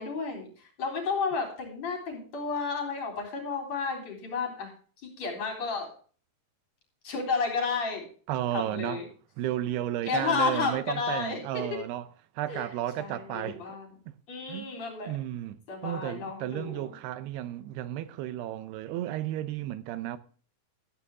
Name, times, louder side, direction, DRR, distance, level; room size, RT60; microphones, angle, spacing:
voice 1, 0.0-4.7 5.0-5.9 7.0-8.1 8.5-9.1 10.1-11.8 12.5-12.7 13.0-13.9 14.3-15.1 15.7-16.9, left 5 dB, 45° left, 4.8 m, -32 dB
voice 2, 8.3-9.0 9.4-12.1 12.4-13.6 14.5-14.7 15.1-20.2, right 13 dB, 85° right, 2.9 m, -33 dB
14.0 x 9.2 x 3.6 m
omnidirectional pair, 4.6 m